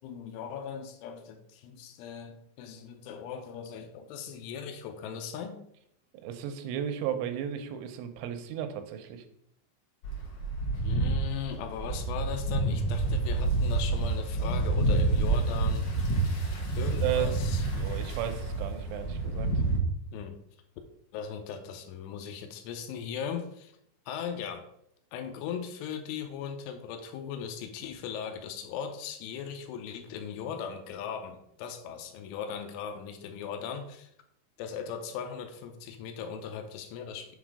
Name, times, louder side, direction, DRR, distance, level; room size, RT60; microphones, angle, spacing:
voice 1, 0.0-5.6 10.8-15.8 16.8-17.6 20.1-20.3 21.1-23.7 24.1-24.7 25.1-34.1 34.6-37.4, left 7 dB, 90° left, 5 dB, 3.2 m, -38 dB
voice 2, 6.2-9.2 17.0-17.4 17.8-19.5, right 10 dB, 85° right, 8 dB, 3.0 m, -34 dB
sound 1, 10.0-19.8, right 2 dB, 65° left, 2.2 m, -28 dB
7.2 x 3.9 x 4.7 m, 0.72 s
omnidirectional pair, 5.5 m